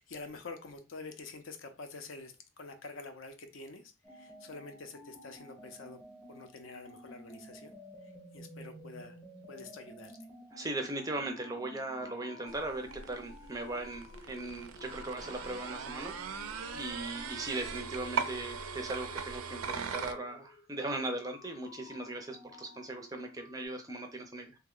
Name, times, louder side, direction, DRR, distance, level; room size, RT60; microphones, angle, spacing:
voice 1, 0.0-6.0 6.3-7.7 8.0-9.2 9.5-10.1, left 3 dB, 65° left, 7 dB, 0.6 m, -47 dB
sound 1, 4.0-23.7, left 2 dB, 20° left, 0.7 m, -52 dB
voice 2, 10.5-24.6, right 2 dB, 15° right, 5 dB, 0.4 m, -39 dB
sound 2, 12.5-20.1, right 6 dB, 85° right, 0.4 m, -40 dB
2.9 x 2.1 x 3.7 m, 0.30 s
head